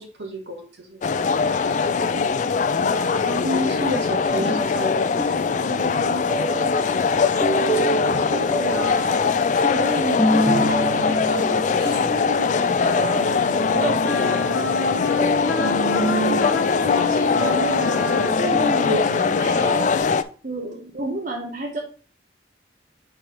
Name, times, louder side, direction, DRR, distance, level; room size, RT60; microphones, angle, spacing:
voice 1, 0.0-1.0 2.2-2.5 3.0-5.1 8.1-8.3 15.6-16.8 18.8-19.3, right 1 dB, 75° right, 3 dB, 1.6 m, -29 dB
sound 1, 1.0-20.2, left 5 dB, 40° left, 0.4 m, -22 dB
voice 2, 1.0-3.4 5.6-6.9 7.3-7.4 7.9-9.3 9.6-15.2 16.8-19.9 20.4-21.8, right 2 dB, 50° right, 1 dB, 0.9 m, -32 dB
sound 2, 4.2-20.0, right 1 dB, 10° left, 1.1 m, -30 dB
Wind instrument woodwind instrument, 12.6-20.1, left 3 dB, 70° left, 1.0 m, -28 dB
4.7 x 4.4 x 5.1 m, 0.38 s
head